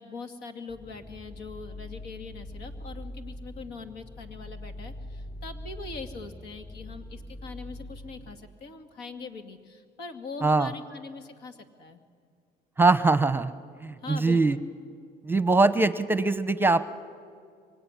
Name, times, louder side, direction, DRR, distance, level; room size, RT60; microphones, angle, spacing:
voice 1, 0.0-12.0 14.0-14.7, left 4 dB, 80° left, 7 dB, 2.3 m, -42 dB
sound 1, 0.7-8.3, left 1 dB, 35° left, 6.3 m, -42 dB
voice 2, 12.8-13.5 13.8-14.6 15.2-16.9, right 3 dB, 10° right, 13 dB, 0.9 m, -22 dB
24.5 x 24.0 x 9.9 m, 2.1 s
cardioid pair, 110°, 17 cm